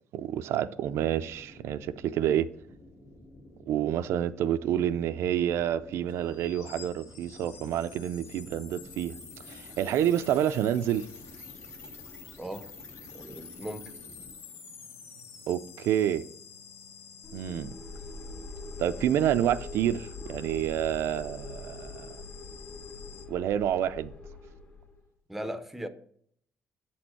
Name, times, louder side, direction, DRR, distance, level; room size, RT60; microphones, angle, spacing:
voice 1, 0.1-2.5 3.7-9.2 9.5-11.1 15.5-16.2 17.3-17.7 18.8-22.1 23.3-24.1, right 10 dB, 85° right, 0.4 m, -28 dB
sound 1, 0.8-14.3, left 1 dB, 60° left, 1.9 m, -52 dB
sound 2, 6.1-23.3, left 6 dB, 75° left, 1.0 m, -49 dB
voice 2, 12.4-12.7 13.1-13.9 25.3-25.9, right 1 dB, 5° right, 0.5 m, -38 dB
sound 3, 17.2-25.0, left 3 dB, 35° left, 1.8 m, -43 dB
7.9 x 4.3 x 4.5 m
cardioid pair, 155°, 4 cm